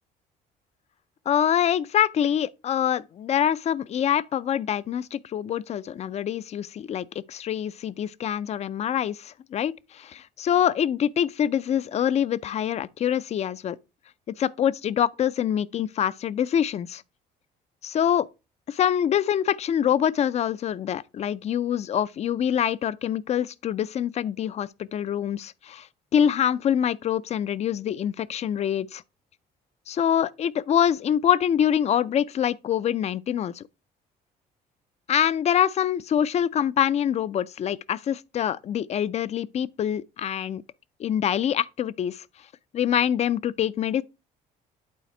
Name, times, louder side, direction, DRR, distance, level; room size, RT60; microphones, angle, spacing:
voice 1, 1.3-13.8 14.3-17.0 17.8-18.3 18.7-25.9 26.1-29.0 29.9-33.6 35.1-40.6 41.0-42.2 42.7-44.0, left 9 dB, 40° left, 0.4 m, -25 dB
8.4 x 4.0 x 4.3 m
cardioid pair, 110°, 17 cm